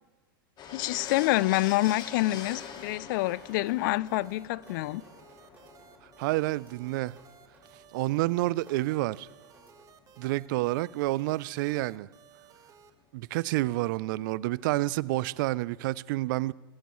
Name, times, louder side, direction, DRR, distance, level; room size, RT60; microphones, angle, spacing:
sound 1, 0.6-10.3 10.6-10.7 10.9-11.0 13.5-13.6 13.8-13.9 14.0-15.9, left 7 dB, 35° left, 1.8 m, -46 dB
voice 1, 0.7-5.0, left 18 dB, 60° left, 0.4 m, -27 dB
sound 2, 0.9-12.9, right 8 dB, 30° right, 1.2 m, -57 dB
sound 3, 3.5-9.8, right 2 dB, 15° right, 5.5 m, -61 dB
voice 2, 6.2-7.2 7.9-9.3 10.2-12.1 13.1-16.5, right 18 dB, 60° right, 0.4 m, -29 dB
23.0 x 13.5 x 3.1 m
hypercardioid pair, 110°, 12 cm